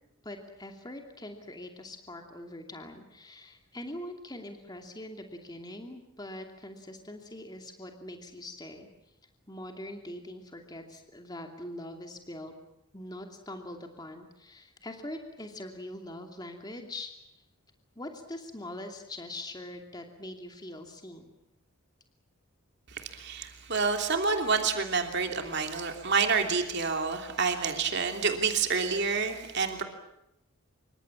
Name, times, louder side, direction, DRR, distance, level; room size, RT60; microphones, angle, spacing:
voice 1, 0.2-8.9 9.5-12.5 12.9-17.4 18.0-21.3, left 1 dB, 20° left, 4 dB, 2.7 m, -43 dB
voice 2, 22.9-29.8, right 5 dB, 50° right, 4 dB, 3.0 m, -28 dB
27.5 x 24.5 x 7.3 m, 0.84 s
head